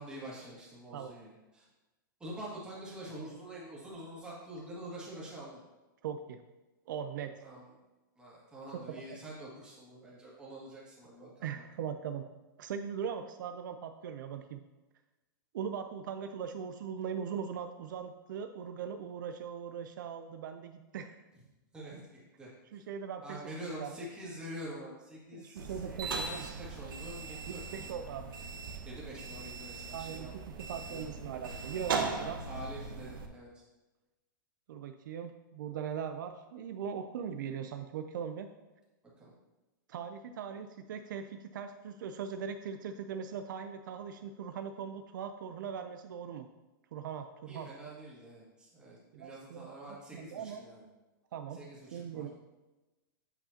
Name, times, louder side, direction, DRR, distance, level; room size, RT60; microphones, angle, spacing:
voice 1, 0.0-1.7 2.2-5.6 7.4-7.7 8.2-11.6 21.7-22.8 23.2-27.9 28.9-31.2 32.1-33.6 39.2-39.3 47.5-50.9 51.5-52.2, right 1 dB, 10° right, -6 dB, 1.9 m, -46 dB
voice 2, 6.0-6.4 6.9-7.4 8.9-9.0 11.4-12.2 12.6-14.6 15.5-21.2 22.7-23.4 23.6-24.0 25.3-26.5 27.7-28.3 29.9-30.3 30.6-32.4 34.7-38.5 39.9-46.5 46.9-47.7 49.1-50.6 51.3-51.6 51.9-52.3, right 7 dB, 65° right, 8 dB, 0.4 m, -40 dB
sound 1, 25.6-33.3, right 4 dB, 85° right, 0.9 m, -39 dB
8.2 x 5.6 x 2.8 m, 1.1 s
hypercardioid pair, 155°, 11 cm